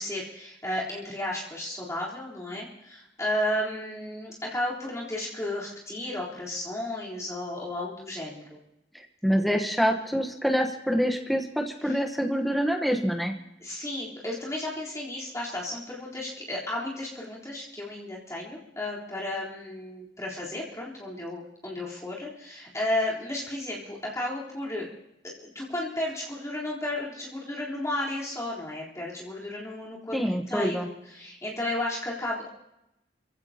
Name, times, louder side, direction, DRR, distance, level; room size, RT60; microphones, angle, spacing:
voice 1, 0.0-8.6 11.8-12.0 13.6-24.9 25.2-32.5, left 1 dB, 15° left, -6 dB, 3.7 m, -33 dB
voice 2, 9.2-13.3 30.1-30.9, equal, ahead, 2 dB, 1.1 m, -26 dB
28.5 x 16.0 x 2.9 m, 0.87 s
head